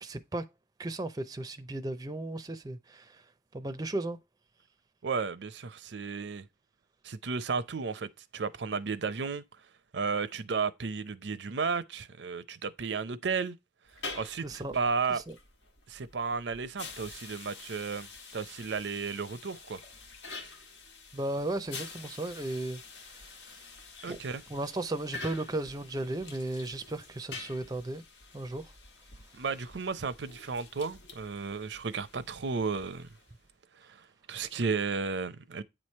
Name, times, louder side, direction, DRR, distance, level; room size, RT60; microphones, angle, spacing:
voice 1, 0.0-0.5 0.8-3.2 3.5-4.2 14.4-14.7 15.1-15.4 21.1-22.8 23.1-23.6 24.1-24.2 24.5-28.0 28.3-28.7, right 2 dB, 20° right, 0.5 m, -35 dB
voice 2, 5.0-6.5 7.0-9.4 9.9-13.6 14.1-15.2 15.9-18.1 18.3-19.8 24.0-24.4 29.3-33.1 33.9-34.0 34.3-35.6, right 5 dB, 80° right, 0.6 m, -33 dB
sound 1, 13.9-33.5, left 4 dB, 85° left, 1.4 m, -47 dB
9.0 x 3.2 x 4.3 m
head